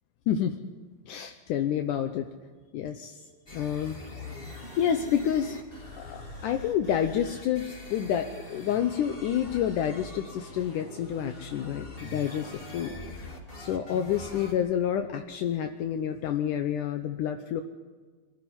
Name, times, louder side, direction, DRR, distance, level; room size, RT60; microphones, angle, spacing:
voice 1, 1.1-2.3 2.7-3.2 3.5-4.0 4.8-5.6 6.0-13.0 13.6-17.6, left 9 dB, 75° left, 6 dB, 2.3 m, -29 dB
sound 1, 3.5-14.5, left 2 dB, 15° left, 2.8 m, -43 dB
24.5 x 13.0 x 10.0 m, 1.4 s
omnidirectional pair, 3.9 m